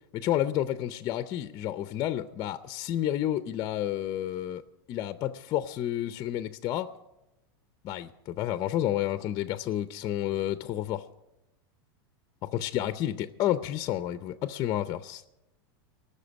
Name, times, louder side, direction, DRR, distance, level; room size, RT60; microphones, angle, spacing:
voice 1, 0.1-4.6 4.9-6.9 7.8-11.0 12.4-15.3, left 12 dB, 30° left, 11 dB, 0.5 m, -30 dB
18.5 x 6.6 x 9.6 m, 0.95 s
supercardioid pair, 145°, 13 cm